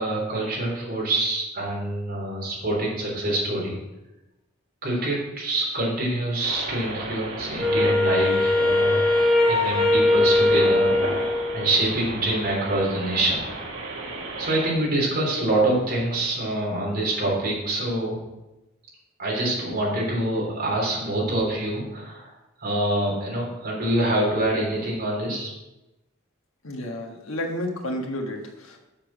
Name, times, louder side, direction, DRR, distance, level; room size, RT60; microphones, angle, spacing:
voice 1, 0.0-3.8 4.8-9.0 9.4-13.4 14.4-18.2 19.2-22.3 22.6-25.5, right 1 dB, 45° right, -3 dB, 3.4 m, -25 dB
sound 1, 6.4-14.7, right 2 dB, 65° right, 1.7 m, -34 dB
Wind instrument woodwind instrument, 7.6-12.0, left 2 dB, 5° left, 1.2 m, -21 dB
voice 2, 26.6-28.9, left 1 dB, 80° left, 2 dB, 1.5 m, -31 dB
7.3 x 6.9 x 6.0 m, 0.99 s
head